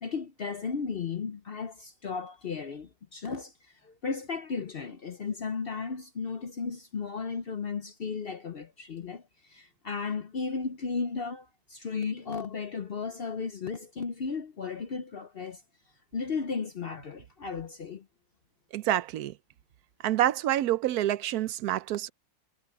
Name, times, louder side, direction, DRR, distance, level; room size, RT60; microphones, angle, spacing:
voice 1, 0.0-15.6 16.1-18.1, left 5 dB, 50° left, 0.7 m, -35 dB
voice 2, 18.7-19.3 20.0-22.1, right 13 dB, 75° right, 1.1 m, -27 dB
omnidirectional pair, 1.7 m